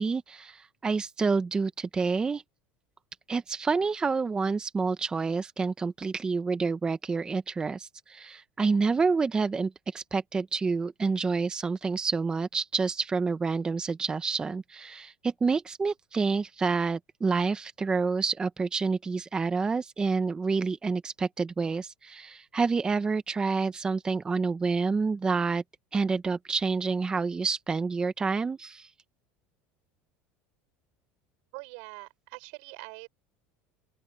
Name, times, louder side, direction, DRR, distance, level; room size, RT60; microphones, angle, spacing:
voice 1, 0.0-2.4 3.3-25.6 25.9-28.9, right 4 dB, 15° right, 0.8 m, -28 dB
voice 2, 31.5-33.1, right 34 dB, 75° right, 5.7 m, -43 dB
open air
supercardioid pair, 140°, 5 cm